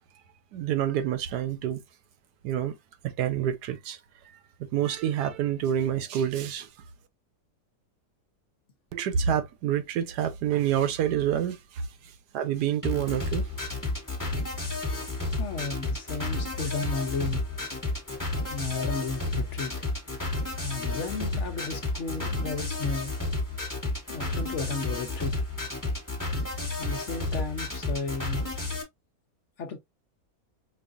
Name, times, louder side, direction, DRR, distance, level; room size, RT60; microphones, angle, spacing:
voice 1, 0.5-1.8 2.4-2.7 3.0-4.0 4.6-6.7 8.9-11.9 12.3-13.5, right 10 dB, 85° right, 1.3 m, -27 dB
sound 1, 12.8-28.8, left 2 dB, 15° left, 1.3 m, -31 dB
voice 2, 15.4-17.4 18.5-19.7 20.1-20.2 20.5-23.1 24.1-25.4 26.8-28.7 29.6-29.8, left 4 dB, 55° left, 0.9 m, -34 dB
5.2 x 2.5 x 2.5 m
omnidirectional pair, 1.7 m